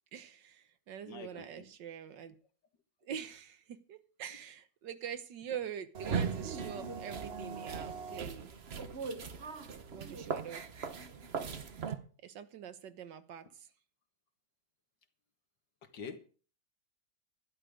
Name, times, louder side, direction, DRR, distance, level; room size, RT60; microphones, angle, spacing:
voice 1, 0.1-2.3 3.0-8.5 9.9-10.6 12.2-13.7, right 8 dB, 80° right, 11 dB, 1.7 m, -44 dB
voice 2, 1.0-1.7 13.4-13.5 15.8-16.3, left 5 dB, 90° left, 6 dB, 2.3 m, -46 dB
sound 1, 5.9-12.0, right 5 dB, 40° right, 1.1 m, -39 dB
12.0 x 11.0 x 5.1 m, 0.41 s
omnidirectional pair, 1.9 m